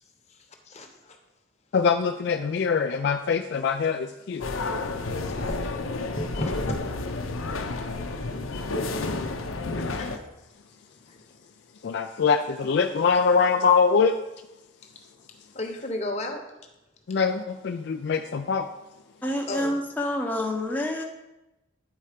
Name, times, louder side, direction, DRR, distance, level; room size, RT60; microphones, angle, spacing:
voice 1, 0.7-1.2 5.3-6.9 7.6-7.9 8.5-8.7 9.9-10.1 11.1-11.2 15.5-16.4 19.5-19.8, left 1 dB, 35° left, 4 dB, 0.9 m, -34 dB
voice 2, 1.7-4.4 9.8-9.9 11.8-14.2 17.1-18.7, left 5 dB, 55° left, 6 dB, 0.3 m, -23 dB
sound 1, 4.4-10.2, left 3 dB, 85° left, 0.7 m, -30 dB
voice 3, 19.2-21.0, left 1 dB, 10° left, 0 dB, 0.7 m, -28 dB
9.4 x 4.3 x 5.0 m, 0.96 s
head